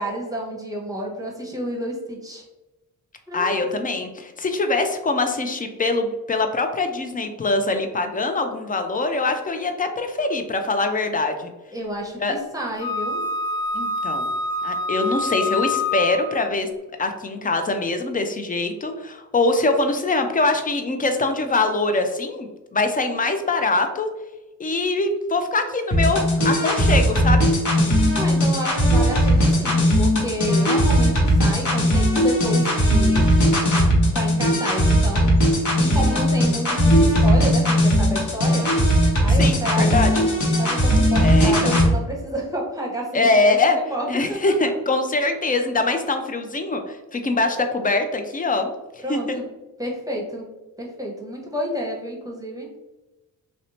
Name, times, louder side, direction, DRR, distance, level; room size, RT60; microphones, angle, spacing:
voice 1, 0.0-2.4 3.3-3.8 11.7-13.2 28.2-33.3 33.9-35.4 35.7-38.6 39.2-40.1 40.6-43.6 43.9-44.5 49.0-49.4 49.8-50.5 50.8-52.7, equal, 10° right, -2 dB, 0.9 m, -30 dB
voice 2, 3.3-11.5 12.2-12.4 13.7-14.3 14.6-16.7 17.0-24.1 24.6-27.5 35.5-36.0 39.3-40.3 41.2-41.7 43.1-43.8 44.1-48.7 49.1-49.4, left 3 dB, 25° left, 6 dB, 0.4 m, -23 dB
Wind instrument woodwind instrument, 12.8-16.4, left 2 dB, 70° left, 1.3 m, -26 dB
sound 1, 25.9-41.9, equal, 50° left, 1.0 m, -18 dB
2.6 x 2.1 x 2.9 m, 1.0 s
cardioid pair, 65°, 37 cm